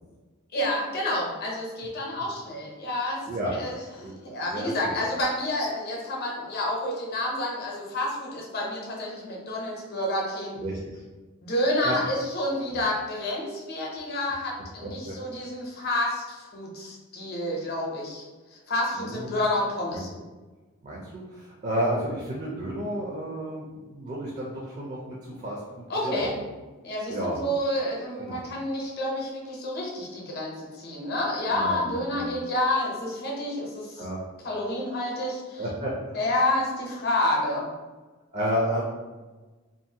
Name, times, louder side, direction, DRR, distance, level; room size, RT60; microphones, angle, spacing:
voice 1, 0.5-10.6 11.4-18.2 18.5-20.1 25.9-26.3 26.8-34.1 34.4-35.6 36.1-37.7, left 1 dB, 45° left, -2 dB, 0.7 m, -29 dB
voice 2, 4.0-4.9 10.6-11.0 11.8-12.0 12.7-12.8 14.8-15.1 19.0-19.3 19.9-20.0 20.8-26.3 27.1-27.4 28.2-28.4 31.5-32.3 34.0-34.2 35.6-36.2 38.3-38.8, equal, 35° right, -3 dB, 0.4 m, -32 dB
2.5 x 2.4 x 2.7 m, 1.3 s
head